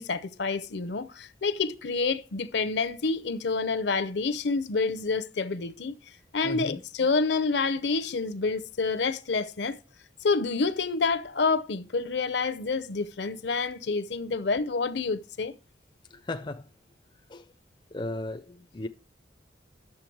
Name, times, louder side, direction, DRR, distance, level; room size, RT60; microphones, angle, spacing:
voice 1, 0.0-6.0 6.3-9.8 10.2-15.5, left 4 dB, 70° left, 0.6 m, -28 dB
voice 2, 6.4-6.8 16.1-16.7 17.3-17.4 17.9-18.9, left 2 dB, 25° left, 0.4 m, -35 dB
8.6 x 6.6 x 4.6 m
head